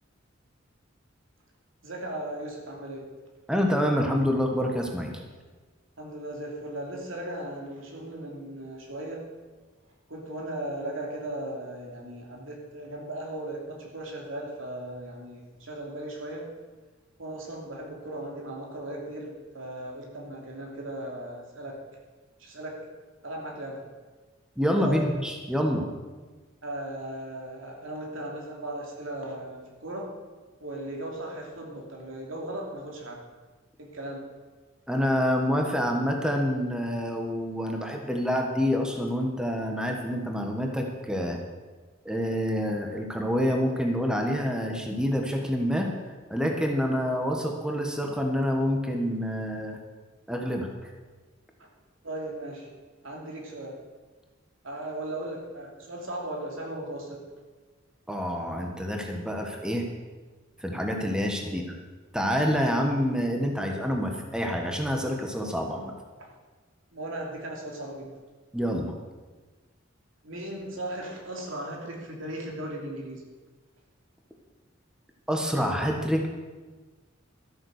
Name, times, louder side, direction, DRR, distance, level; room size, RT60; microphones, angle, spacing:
voice 1, 1.8-3.1 6.0-9.2 10.1-16.5 17.2-21.8 22.4-22.9 23.2-23.8 24.8-25.1 26.6-30.1 30.6-33.2 33.8-34.3 51.6-51.7 52.0-52.7 53.0-53.8 54.6-57.2 61.4-61.6 66.2-66.3 66.9-68.1 70.2-73.3, right 1 dB, 80° right, 0 dB, 2.9 m, -37 dB
voice 2, 3.5-5.2 24.6-25.9 34.9-41.4 42.0-45.9 46.3-49.8 50.3-50.9 58.1-59.9 60.6-61.6 62.1-65.9 68.5-68.9 75.3-76.3, equal, 5° right, 2 dB, 1.3 m, -27 dB
13.0 x 8.6 x 6.5 m, 1.3 s
head